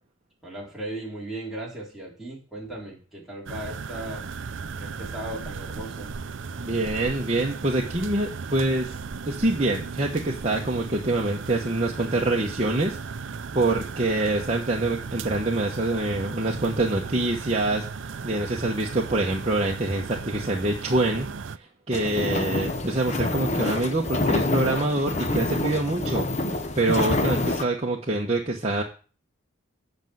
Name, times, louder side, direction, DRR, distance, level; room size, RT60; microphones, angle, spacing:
voice 1, 0.4-4.3 4.8-6.1 24.1-24.2, right 1 dB, ahead, -5 dB, 3.6 m, -37 dB
sound 1, 3.5-21.6, right 5 dB, 60° right, 0.5 m, -36 dB
voice 2, 6.6-9.0 9.3-13.0 13.5-21.3 21.6-28.8, right 2 dB, 30° right, -2 dB, 1.1 m, -25 dB
sound 2, 21.9-27.6, left 2 dB, 35° left, 0.7 m, -27 dB
8.2 x 5.4 x 7.8 m, 0.37 s
head